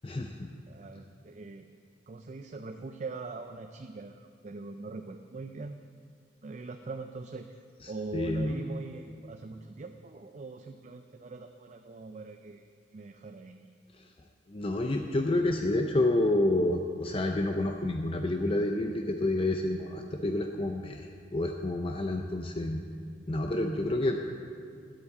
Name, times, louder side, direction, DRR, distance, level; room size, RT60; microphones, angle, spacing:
voice 1, 0.0-0.5 8.1-8.6 14.0-14.1 14.5-22.8 23.3-24.2, left 1 dB, 30° left, 3 dB, 0.5 m, -29 dB
voice 2, 0.7-1.7 2.1-7.6 7.9-13.8, right 3 dB, 40° right, 6 dB, 0.4 m, -42 dB
9.8 x 8.5 x 7.1 m, 2.1 s
head